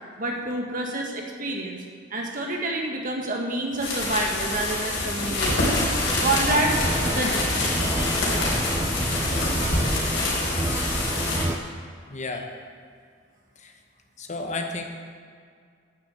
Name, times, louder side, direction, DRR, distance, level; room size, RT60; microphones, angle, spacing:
voice 1, 0.2-1.8 2.1-6.7 7.1-8.3 10.7-10.9, right 2 dB, 45° right, 0 dB, 1.6 m, -29 dB
sound 1, 3.7-11.4, left 2 dB, 75° left, 3.6 m, -26 dB
sound 2, 4.9-9.9, equal, 15° left, 3.3 m, -35 dB
sound 3, 5.5-11.6, right 1 dB, 15° right, 0.4 m, -29 dB
voice 2, 12.1-12.5 13.6-13.8 14.2-14.8, left 3 dB, 40° left, 4 dB, 1.0 m, -32 dB
10.0 x 7.0 x 7.8 m, 2.1 s
head